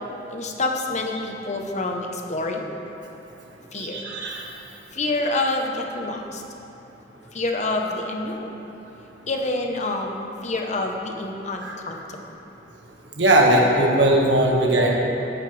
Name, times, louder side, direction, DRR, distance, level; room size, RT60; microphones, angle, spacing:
voice 1, 0.3-2.7 3.7-4.0 4.9-6.4 7.3-8.5 9.3-12.2, left 2 dB, 40° left, 2 dB, 1.0 m, -27 dB
voice 2, 3.7-4.4 11.6-11.8 13.2-15.0, right 1 dB, 75° right, -1 dB, 1.6 m, -19 dB
15.5 x 9.9 x 3.4 m, 3.0 s
head